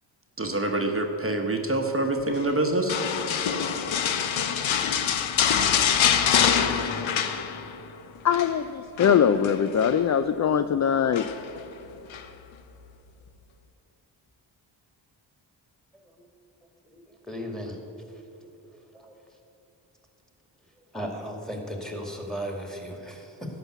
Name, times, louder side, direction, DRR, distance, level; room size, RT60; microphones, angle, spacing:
voice 1, 0.4-3.0, right 2 dB, 30° right, 3 dB, 1.0 m, -26 dB
sound 1, 2.9-7.9 8.2-8.5 9.0-10.0 11.1-11.6 12.1-12.3, left 8 dB, 75° left, 0.8 m, -25 dB
voice 2, 8.2-11.3, left 8 dB, 40° left, 11 dB, 0.4 m, -22 dB
voice 3, 15.9-16.3 16.8-17.8 18.1-18.2 18.9-19.2 20.6-23.6, equal, ahead, 2 dB, 2.2 m, -37 dB
11.5 x 5.8 x 8.1 m, 2.9 s
cardioid pair, 55°, 47 cm